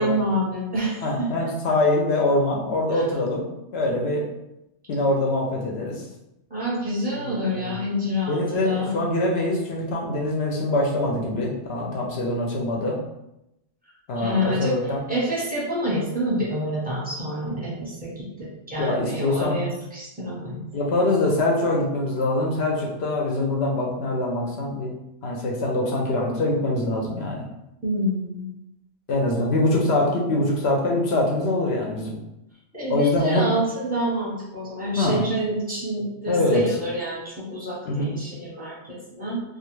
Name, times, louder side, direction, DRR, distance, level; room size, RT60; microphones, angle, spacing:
voice 1, 0.0-1.5 2.9-3.1 6.5-8.9 14.2-20.6 27.8-28.5 32.7-39.4, equal, 10° right, -7 dB, 0.7 m, -28 dB
voice 2, 1.0-3.5 3.7-4.2 4.9-6.0 7.2-7.7 8.3-13.0 14.1-15.0 18.8-19.6 20.7-24.9 25.2-27.4 29.1-32.2 32.9-33.5 35.0-35.2 36.3-36.6 37.9-38.2, left 2 dB, 65° left, -1 dB, 0.7 m, -24 dB
2.4 x 2.3 x 3.0 m, 0.86 s
omnidirectional pair, 1.3 m